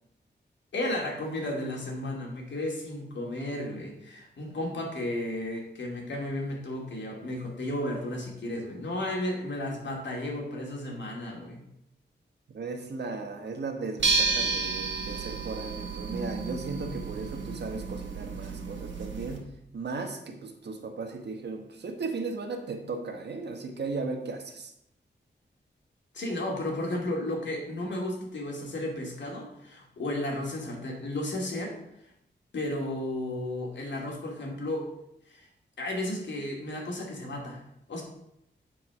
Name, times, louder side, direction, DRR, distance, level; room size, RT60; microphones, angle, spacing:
voice 1, 0.7-11.6 26.1-31.7 32.5-34.9 35.3-35.5 35.8-37.6 37.9-38.0, left 1 dB, 75° left, 0 dB, 2.5 m, -33 dB
voice 2, 12.5-24.7, right 3 dB, 65° right, 5 dB, 1.3 m, -36 dB
sound 1, 14.0-19.4, right 4 dB, 85° right, 1.7 m, -31 dB
9.3 x 4.7 x 5.9 m, 0.79 s
wide cardioid pair, 155°, 19 cm